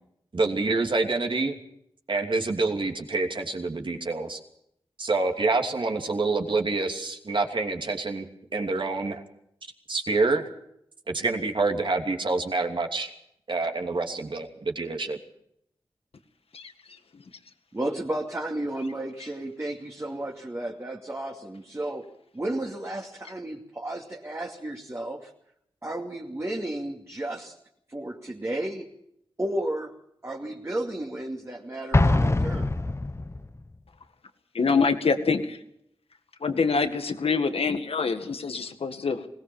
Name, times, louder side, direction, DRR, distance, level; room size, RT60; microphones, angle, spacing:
voice 1, 0.3-1.6 2.1-4.4 5.0-8.3 8.5-9.2 9.9-10.5 11.1-13.1 13.5-15.2, right 3 dB, 55° right, 3 dB, 2.9 m, -27 dB
voice 2, 17.7-22.1 22.3-25.3 25.8-27.6 27.9-28.9 29.4-29.9 30.2-32.7, right 1 dB, 30° right, -1 dB, 2.5 m, -33 dB
Explosion, 31.9-33.6, left 2 dB, 30° left, 1.0 m, -23 dB
voice 3, 34.5-35.6 36.4-39.3, left 4 dB, 80° left, 8 dB, 1.9 m, -25 dB
21.0 x 18.5 x 7.1 m, 0.75 s
cardioid pair, 55°, 10 cm